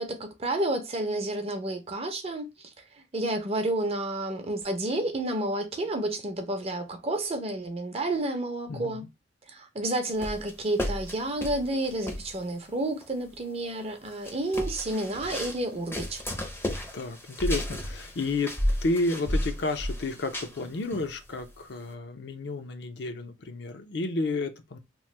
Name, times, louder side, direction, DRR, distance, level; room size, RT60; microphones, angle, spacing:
voice 1, 0.0-2.7 3.1-9.0 9.5-16.2, right 1 dB, 35° right, 0.6 m, -30 dB
voice 2, 8.7-9.1 16.9-24.8, left 2 dB, 65° left, 0.5 m, -31 dB
sound 1, 10.2-12.4 13.0-13.1 14.1-15.6 15.9-20.7 20.9-21.4, left 1 dB, 15° left, 0.5 m, -33 dB
3.0 x 2.1 x 3.1 m
head